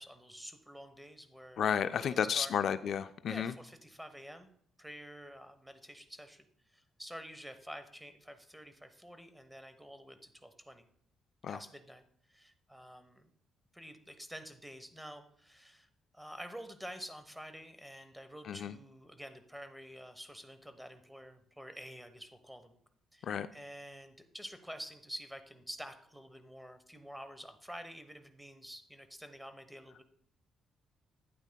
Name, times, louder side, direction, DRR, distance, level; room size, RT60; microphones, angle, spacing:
voice 1, 0.0-2.5 3.2-4.5 4.8-6.4 6.7-10.9 11.5-12.0 12.3-13.3 13.7-22.7 23.1-30.0, equal, 5° right, 9 dB, 1.0 m, -49 dB
voice 2, 1.6-3.5 11.4-11.6 18.5-18.7 23.3-23.5, left 8 dB, 60° left, 11 dB, 0.3 m, -32 dB
12.0 x 9.0 x 2.2 m, 0.64 s
cardioid pair, 90°, 0 cm